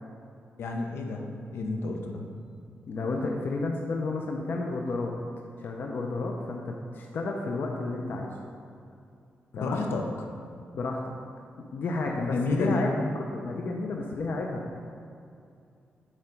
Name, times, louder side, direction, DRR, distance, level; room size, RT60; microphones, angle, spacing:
voice 1, 0.6-1.2 1.5-2.2 9.5-10.1 12.2-12.8, left 3 dB, 80° left, 2 dB, 0.8 m, -30 dB
voice 2, 2.9-5.1 5.6-8.3 9.6-9.9 10.7-11.1 11.7-12.9 13.2-14.8, left 3 dB, 55° left, 0 dB, 0.6 m, -31 dB
9.0 x 3.9 x 4.5 m, 2.5 s
wide cardioid pair, 175°, 4 cm